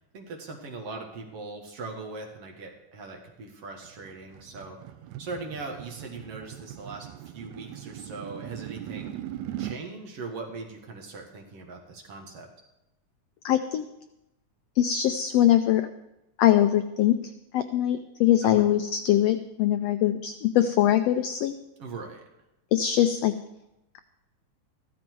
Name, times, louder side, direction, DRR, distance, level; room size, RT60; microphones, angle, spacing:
voice 1, 0.1-4.9 5.2-9.2 9.6-12.5 18.4-18.6 21.8-22.2, right 3 dB, 55° right, 1 dB, 2.4 m, -40 dB
sound 1, 3.8-9.8, right 12 dB, 75° right, 1.8 m, -40 dB
voice 2, 13.4-13.8 14.8-15.9 16.4-17.2 17.5-21.5 22.7-23.3, left 12 dB, 85° left, 9 dB, 1.4 m, -22 dB
14.5 x 13.5 x 4.6 m, 0.91 s
omnidirectional pair, 3.6 m